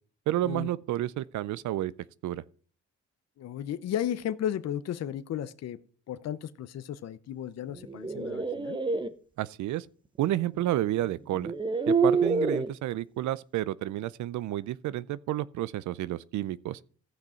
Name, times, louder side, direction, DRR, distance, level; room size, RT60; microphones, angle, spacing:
voice 1, 0.3-1.9 2.2-2.4 9.4-9.9 10.2-11.5 11.9-16.8, right 14 dB, 70° right, 0.5 m, -30 dB
voice 2, 3.4-5.8 6.1-8.8, left 10 dB, 60° left, 0.7 m, -34 dB
sound 1, 7.8-9.1 10.6-10.7 11.3-12.7, right 4 dB, 15° right, 0.8 m, -27 dB
15.0 x 6.1 x 4.3 m
cardioid pair, 90°, 30 cm